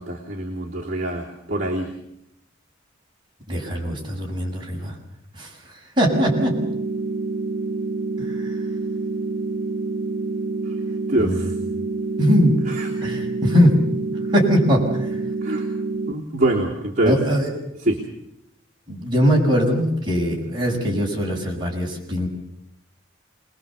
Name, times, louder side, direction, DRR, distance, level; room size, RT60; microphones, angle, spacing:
voice 1, 0.0-1.9 10.6-10.7 11.1-11.5 12.6-12.9 15.4-15.7 16.1-17.2 17.8-18.0, right 1 dB, 40° right, -5 dB, 3.2 m, -24 dB
voice 2, 3.5-4.9 5.4-5.5 6.0-6.5 11.2-11.4 12.2-12.5 13.0-13.8 14.3-14.8 17.1-17.5 18.9-22.3, equal, 25° right, -2 dB, 6.1 m, -20 dB
sound 1, 6.1-16.1, right 3 dB, 85° right, 1.1 m, -27 dB
26.0 x 21.0 x 7.1 m, 0.81 s
head